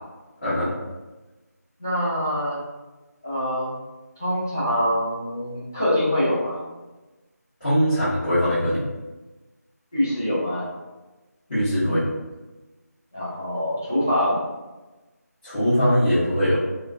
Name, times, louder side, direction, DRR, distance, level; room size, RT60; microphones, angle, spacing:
voice 1, 0.4-0.7 7.6-8.8 11.5-12.1 15.4-16.6, equal, 30° left, -16 dB, 1.2 m, -21 dB
voice 2, 1.8-2.6 3.2-3.8 4.2-6.6 9.9-10.7 13.1-14.4, equal, 10° left, -10 dB, 0.4 m, -24 dB
2.8 x 2.3 x 2.5 m, 1.1 s
figure-of-eight pair, 165°, 9 cm